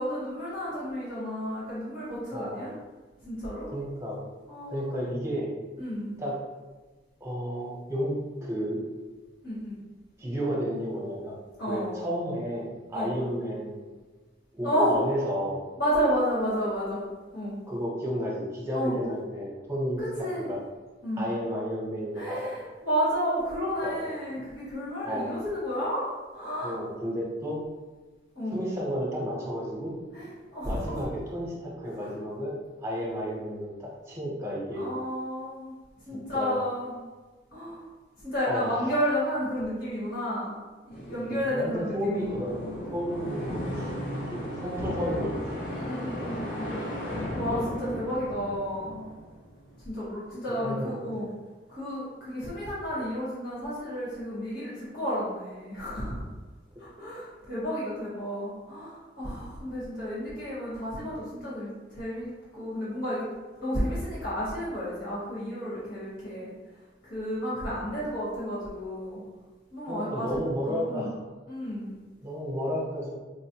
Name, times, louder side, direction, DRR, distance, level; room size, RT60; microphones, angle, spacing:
voice 1, 0.0-2.7 3.2-3.7 4.5-5.0 5.8-6.1 9.4-9.7 11.6-12.1 12.9-13.2 14.6-15.0 15.8-17.0 17.3-17.6 18.7-19.0 20.0-20.5 21.0-21.2 22.1-26.8 28.3-28.6 30.1-31.0 32.0-32.1 33.0-33.2 34.7-35.7 36.0-36.9 37.5-37.9 38.2-40.6 40.8-42.3 42.7-42.9 43.2-43.9 45.7-46.7 47.3-49.0 49.8-51.3 51.7-56.2 56.8-63.3 63.6-66.5 67.1-69.2 69.7-70.4 70.6-71.1 71.5-72.0, equal, 70° left, -8 dB, 1.2 m, -32 dB
voice 2, 2.3-2.7 3.7-4.2 4.7-5.5 6.2-6.4 7.2-8.8 10.2-11.4 11.7-13.8 14.5-15.6 17.7-20.0 20.5-20.6 21.2-22.5 23.8-24.2 25.0-25.3 26.6-27.6 28.5-29.9 30.6-34.9 36.1-36.6 38.4-38.9 41.2-42.5 42.9-45.6 46.0-46.8 47.5-47.7 50.6-51.3 57.0-57.1 69.9-71.2 72.2-73.1, equal, 15° right, -4 dB, 0.8 m, -32 dB
sound 1, 40.9-49.7, equal, 45° left, 0.7 m, -36 dB
4.8 x 2.1 x 2.9 m, 1.3 s
head